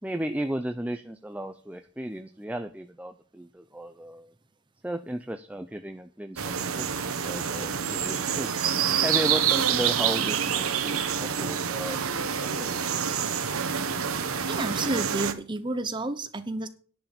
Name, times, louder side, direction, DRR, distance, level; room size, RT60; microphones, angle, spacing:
voice 1, 0.0-4.3 4.8-8.5 9.0-12.8, right 1 dB, 5° right, 7 dB, 0.4 m, -35 dB
sound 1, 6.4-15.3, right 7 dB, 90° right, 1.1 m, -27 dB
voice 2, 14.5-16.7, right 2 dB, 20° right, 10 dB, 0.9 m, -30 dB
10.0 x 5.9 x 6.9 m, 0.41 s
head